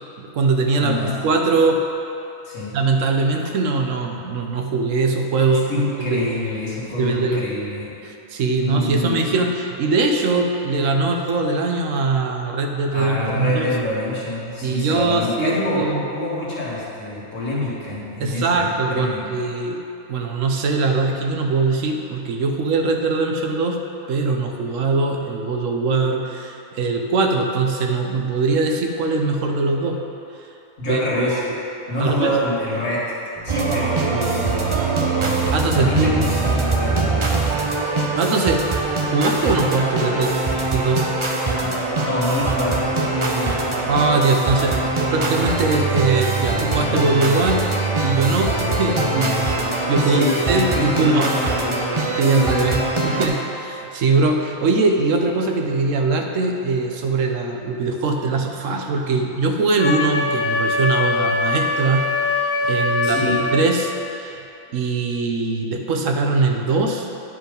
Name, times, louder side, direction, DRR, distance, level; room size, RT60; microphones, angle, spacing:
voice 1, 0.2-1.8 2.7-6.2 7.0-7.4 8.0-13.7 14.6-16.0 18.2-19.8 20.1-23.8 24.1-30.0 30.9-31.5 32.0-32.3 35.5-36.1 38.1-38.6 39.0-40.3 40.7-41.1 43.9-47.6 48.0-51.3 52.1-62.1 62.3-64.4 64.7-67.1, right 3 dB, 75° right, 3 dB, 1.1 m, -21 dB
voice 2, 0.8-1.1 2.4-2.7 5.5-7.9 8.5-9.2 12.9-19.2 30.8-31.4 31.9-33.2 33.4-34.8 35.7-37.2 42.0-43.6 50.0-51.8 52.3-53.0 63.0-63.4, left 1 dB, 75° left, -7 dB, 2.2 m, -26 dB
sound 1, 33.4-35.2 35.6-38.2 38.6-41.2 41.6-44.1 44.6-45.3, right 1 dB, 15° right, 0.9 m, -42 dB
sound 2, 33.5-53.3, right 3 dB, 30° right, 0.6 m, -22 dB
Wind instrument woodwind instrument, 59.8-63.6, left 3 dB, 55° left, 1.2 m, -22 dB
10.0 x 4.8 x 5.2 m, 2.8 s
omnidirectional pair, 1.3 m